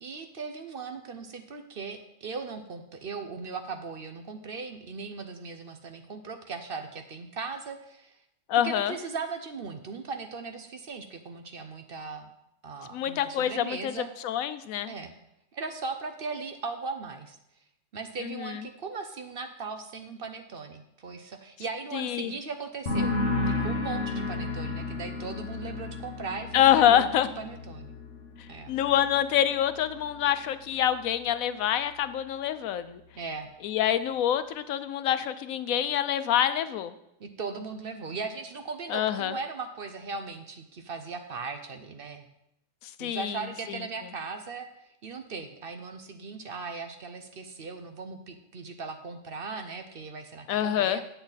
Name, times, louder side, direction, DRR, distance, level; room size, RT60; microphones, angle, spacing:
voice 1, 0.0-8.2 8.6-12.3 12.6-14.1 14.9-15.1 15.5-17.4 17.9-23.1 23.5-27.9 28.5-28.7 33.2-33.5 37.2-42.3 43.0-44.7 45.0-51.0, right 4 dB, 50° right, 7 dB, 0.8 m, -38 dB
voice 2, 8.5-8.9 12.9-14.9 18.2-18.6 21.9-22.3 26.5-27.3 28.7-33.0 33.6-36.9 38.9-39.4 43.0-43.4 50.5-51.0, left 10 dB, 90° left, 12 dB, 1.1 m, -26 dB
sound 1, 22.9-30.3 30.6-31.1, left 2 dB, 60° left, 1.7 m, -33 dB
8.4 x 7.9 x 4.0 m, 0.80 s
omnidirectional pair, 1.4 m